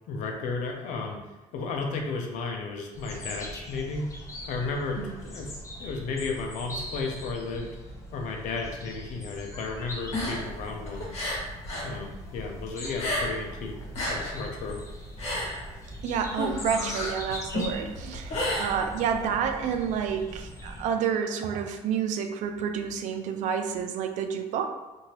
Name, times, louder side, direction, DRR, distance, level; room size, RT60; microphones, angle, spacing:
voice 1, 0.1-1.2 1.5-4.1 4.5-5.5 5.8-7.7 8.1-11.2 11.8-13.7 14.1-14.8, left 4 dB, 75° left, 2 dB, 0.6 m, -33 dB
sound 1, 2.9-20.9, equal, 25° left, 0.6 m, -41 dB
sound 2, 10.0-11.9 12.2-13.5 13.8-19.3, left 1 dB, 55° left, 1.2 m, -32 dB
voice 2, 16.0-24.7, right 7 dB, 70° right, 6 dB, 0.4 m, -29 dB
2.8 x 2.6 x 3.0 m, 1.1 s
cardioid pair, 95°, 13 cm